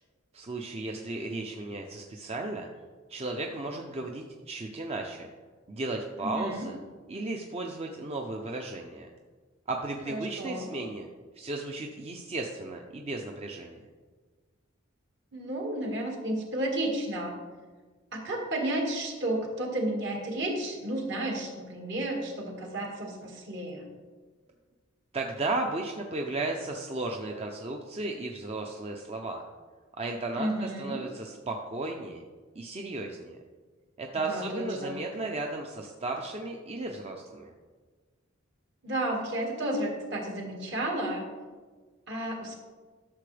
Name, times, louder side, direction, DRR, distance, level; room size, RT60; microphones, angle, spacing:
voice 1, 0.3-2.7 3.1-5.3 5.7-6.8 7.1-9.1 9.7-11.1 11.3-13.8 25.1-29.4 30.0-32.2 32.5-33.4 34.0-37.5, right 2 dB, 30° right, 2 dB, 0.6 m, -35 dB
voice 2, 6.2-6.7 10.1-10.8 15.3-17.3 18.1-23.8 30.4-31.0 34.1-35.0 38.8-41.3 42.1-42.6, right 1 dB, 60° right, 0 dB, 1.9 m, -32 dB
12.0 x 6.8 x 3.4 m, 1.4 s
head